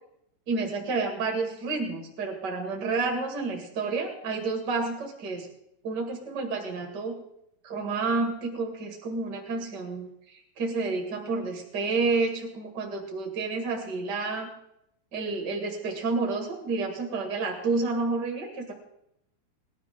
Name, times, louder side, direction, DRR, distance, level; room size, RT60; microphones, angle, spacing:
voice 1, 0.5-5.5 5.8-7.2 7.6-14.5 15.1-18.7, right 3 dB, 90° right, 1 dB, 0.9 m, -30 dB
20.5 x 12.5 x 3.8 m, 0.76 s
omnidirectional pair, 5.9 m